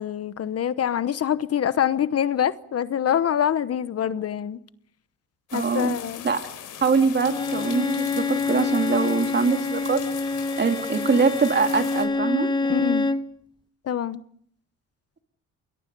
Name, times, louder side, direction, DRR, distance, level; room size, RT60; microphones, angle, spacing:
voice 1, 0.0-4.6 5.5-6.3 12.6-13.1 13.8-14.2, left 9 dB, 55° left, 1.0 m, -25 dB
sound 1, 5.5-12.1, left 9 dB, 75° left, 4.2 m, -39 dB
voice 2, 5.5-6.0 6.2-6.4 6.8-10.0 10.6-12.5, right 5 dB, 35° right, 2.4 m, -23 dB
Bowed string instrument, 7.2-13.3, left 3 dB, 15° left, 1.0 m, -26 dB
29.0 x 22.0 x 5.3 m
cardioid pair, 90°, 30 cm